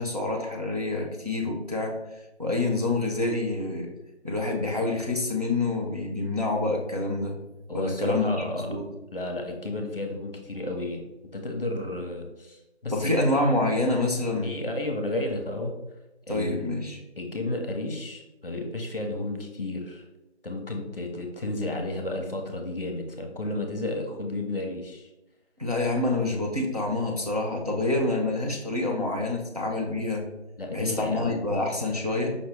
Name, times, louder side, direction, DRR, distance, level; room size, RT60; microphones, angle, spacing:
voice 1, 0.0-2.0 2.4-3.9 4.2-7.3 7.7-8.9 12.9-14.5 16.3-17.0 25.6-30.3 30.7-32.4, left 2 dB, 35° right, -1 dB, 0.6 m, -27 dB
voice 2, 7.7-8.7 9.1-11.1 11.3-13.2 14.4-15.8 16.3-16.7 17.2-20.1 20.4-25.1 30.6-31.6, left 2 dB, 55° left, 3 dB, 0.8 m, -32 dB
5.1 x 2.6 x 3.2 m, 0.97 s
figure-of-eight pair, 175°, 34 cm